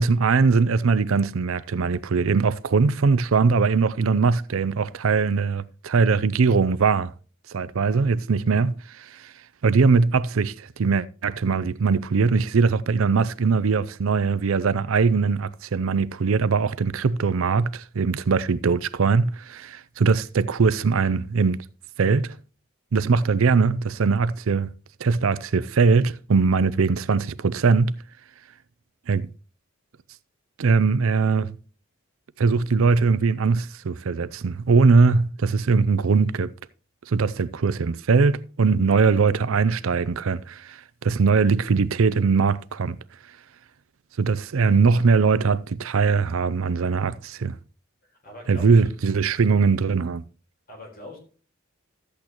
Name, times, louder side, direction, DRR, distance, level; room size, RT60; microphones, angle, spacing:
voice 1, 0.0-7.1 7.5-9.3 9.6-21.6 22.0-22.4 22.9-24.7 25.0-28.0 29.1-29.3 30.6-31.6 32.4-36.5 37.1-43.0 44.2-47.6 48.5-50.2, right 4 dB, 75° right, 0.5 m, -21 dB
voice 2, 48.2-48.8 50.7-51.2, left 1 dB, 45° left, 4.2 m, -41 dB
13.5 x 8.5 x 3.0 m
head